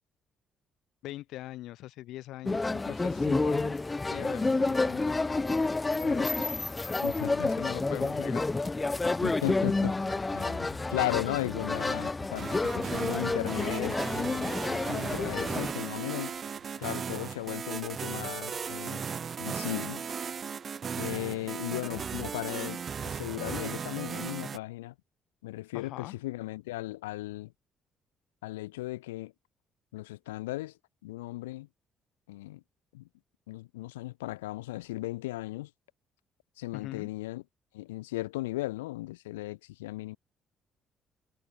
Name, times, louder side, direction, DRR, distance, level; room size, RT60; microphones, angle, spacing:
voice 1, 1.0-5.6 6.0-6.5 7.2-8.4 25.7-26.2 36.7-37.1, left 15 dB, 70° left, 5.8 m, -42 dB
sound 1, 2.4-15.7, left 3 dB, 25° left, 2.4 m, -29 dB
voice 2, 7.0-7.5 9.2-16.4 16.8-19.0 19.4-20.0 21.0-24.9 25.4-27.5 28.4-29.3 29.9-31.7 32.3-32.6 32.9-33.1 33.5-35.7 36.6-37.4 37.7-40.2, left 18 dB, 85° left, 3.2 m, -36 dB
sound 2, 8.9-18.8, right 31 dB, 80° right, 5.9 m, -59 dB
sound 3, 12.4-24.6, right 6 dB, 45° right, 4.4 m, -36 dB
hypercardioid pair, 50°, 0 cm